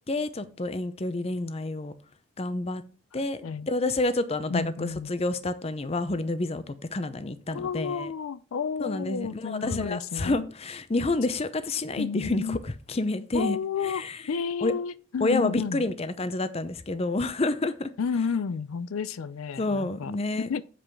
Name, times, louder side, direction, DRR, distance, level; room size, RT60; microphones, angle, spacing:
voice 1, 0.1-1.9 2.4-2.8 3.1-8.1 8.8-13.6 13.8-14.2 14.6-14.7 15.2-17.9 19.6-20.6, left 2 dB, 30° left, 0.6 m, -29 dB
voice 2, 4.5-5.1 7.5-10.4 12.0-12.6 13.3-15.9 18.0-20.1 20.4-20.6, left 6 dB, 80° left, 0.4 m, -31 dB
7.6 x 5.0 x 5.8 m
head